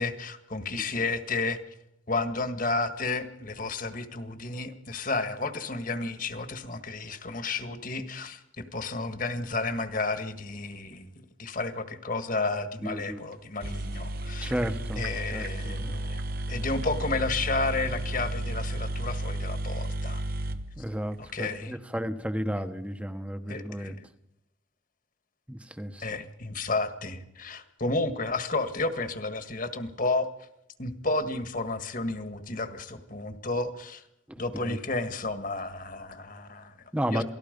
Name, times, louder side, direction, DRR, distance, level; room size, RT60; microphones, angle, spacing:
voice 1, 0.0-1.6 2.1-11.1 11.4-14.5 15.0-16.2 16.5-20.2 21.2-21.8 23.5-24.0 26.0-30.3 30.8-34.0 34.4-36.7 37.1-37.2, left 3 dB, 40° left, 9 dB, 1.7 m, -32 dB
voice 2, 12.8-13.2 14.4-16.0 20.8-23.9 25.5-26.2 34.3-34.8 36.9-37.2, equal, 5° right, 9 dB, 1.1 m, -33 dB
sound 1, 13.3-13.4 13.6-21.4, right 1 dB, 50° right, 1.0 m, -33 dB
28.0 x 19.0 x 5.3 m, 0.84 s
head